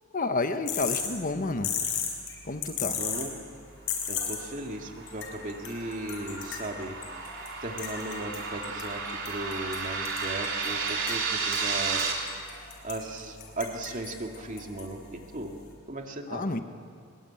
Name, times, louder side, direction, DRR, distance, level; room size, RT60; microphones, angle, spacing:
voice 1, 0.1-1.8 2.4-3.0 16.3-16.6, left 3 dB, 40° left, 8 dB, 1.2 m, -30 dB
sound 1, 0.7-15.7, left 7 dB, 60° left, 5.6 m, -38 dB
voice 2, 3.0-3.3 4.1-7.0 7.6-12.2 12.8-15.5 15.9-16.5, right 1 dB, 40° right, 2 dB, 2.4 m, -37 dB
sound 2, 4.4-12.1, right 5 dB, 65° right, 4.1 m, -33 dB
23.5 x 22.5 x 8.8 m, 2.3 s
head